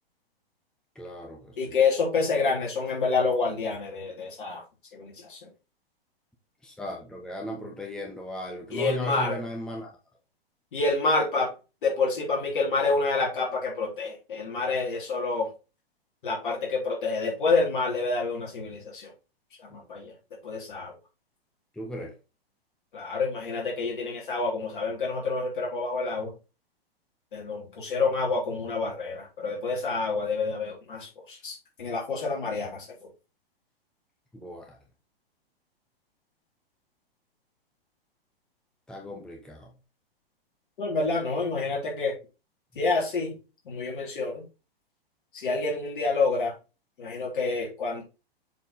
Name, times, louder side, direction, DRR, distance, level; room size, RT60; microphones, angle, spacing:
voice 1, 0.9-1.8 6.6-9.9 21.7-22.1 34.3-34.8 38.9-39.7, equal, ahead, 0 dB, 1.0 m, -37 dB
voice 2, 1.6-4.6 4.9-5.5 8.7-9.4 10.7-11.5 11.8-15.5 16.2-19.1 19.7-20.1 20.4-20.9 22.9-26.3 27.3-33.1 40.8-42.1 42.8-43.4 43.7-44.4 45.3-46.5 47.0-48.0, left 3 dB, 55° left, -2 dB, 3.3 m, -28 dB
7.4 x 4.2 x 3.9 m, 0.31 s
figure-of-eight pair, 105°, 31 cm